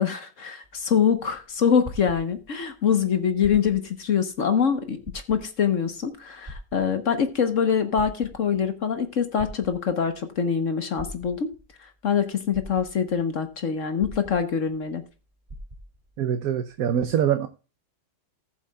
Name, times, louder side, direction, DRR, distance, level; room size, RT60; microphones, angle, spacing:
voice 1, 0.0-11.5 11.8-15.0, left 7 dB, 50° left, 8 dB, 1.2 m, -24 dB
sound 1, 0.6-2.7 3.3-4.0 4.4-4.5 5.0-5.7 6.5-7.3 7.8-8.6 9.4-10.1 11.0-11.7 12.2-12.3 12.5-13.2 14.0-14.8 15.1-15.2 15.5-16.1 16.8-16.9, equal, 20° right, 1.9 m, -42 dB
voice 2, 16.2-17.5, right 9 dB, 60° right, 8 dB, 1.1 m, -24 dB
18.5 x 7.5 x 2.3 m, 0.34 s
omnidirectional pair, 1.9 m